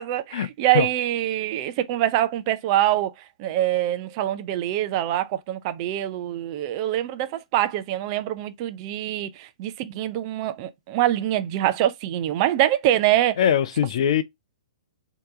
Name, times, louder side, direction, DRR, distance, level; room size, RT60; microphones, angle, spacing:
voice 1, 0.0-3.1 3.4-13.4, right 13 dB, 40° right, 0.6 m, -24 dB
voice 2, 13.4-14.2, left 9 dB, 55° left, 0.6 m, -21 dB
4.4 x 3.0 x 3.6 m
figure-of-eight pair, 115°, 4 cm